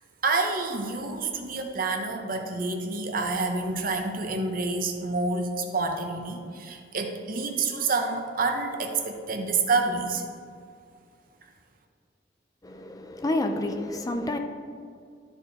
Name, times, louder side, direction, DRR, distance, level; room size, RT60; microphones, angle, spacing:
voice 1, 0.2-10.2, right 3 dB, 50° right, 0.9 m, -28 dB
voice 2, 12.6-14.4, left 1 dB, 20° left, 0.4 m, -29 dB
12.5 x 4.5 x 4.1 m
head